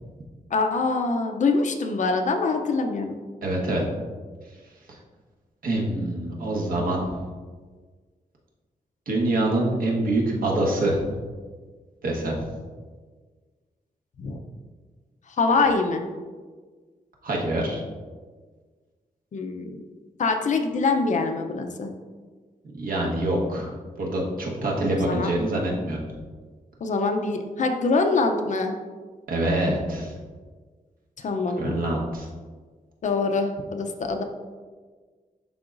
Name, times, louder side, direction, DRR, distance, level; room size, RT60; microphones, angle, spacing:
voice 1, 0.5-3.2 14.2-14.4 15.3-16.0 19.3-19.8 20.2-21.9 24.9-25.3 26.8-28.8 31.2-31.8 33.0-34.2, left 3 dB, 55° left, 5 dB, 0.6 m, -24 dB
voice 2, 3.4-3.8 4.9-5.0 5.6-7.1 9.1-11.0 12.0-12.4 17.2-17.8 22.8-23.7 24.0-26.0 29.3-30.1 31.6-32.3, right 1 dB, 65° right, -2 dB, 1.3 m, -25 dB
11.0 x 3.8 x 2.5 m, 1.5 s
wide cardioid pair, 165°, 15 cm